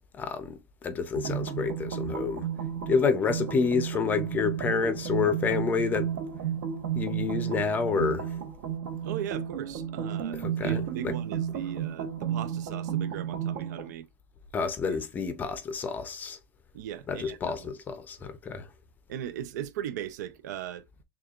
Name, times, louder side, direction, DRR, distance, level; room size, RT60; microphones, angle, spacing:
voice 1, 0.1-2.5 2.9-6.1 6.9-8.3 10.3-11.2 14.5-16.4 17.1-18.7, left 5 dB, 20° left, 0.5 m, -29 dB
sound 1, 1.1-13.9, right 9 dB, 65° right, 1.1 m, -32 dB
voice 2, 9.0-14.1 14.8-15.0 16.7-17.8 19.1-20.8, right 10 dB, 90° right, 0.5 m, -38 dB
6.5 x 2.4 x 2.3 m
supercardioid pair, 160°, 9 cm